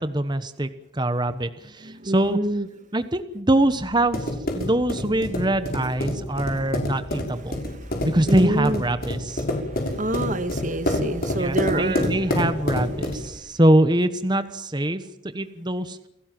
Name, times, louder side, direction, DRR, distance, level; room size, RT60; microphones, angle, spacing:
voice 1, 0.0-2.4 2.9-7.6 8.0-9.4 11.4-15.0 15.3-16.0, right 1 dB, 20° right, 11 dB, 1.1 m, -23 dB
voice 2, 1.8-2.7 7.5-8.8 9.5-12.1, right 1 dB, 40° right, 10 dB, 1.8 m, -27 dB
sound 1, 3.6-13.4, left 1 dB, 50° left, 6.2 m, -28 dB
29.5 x 17.5 x 7.6 m, 0.87 s
head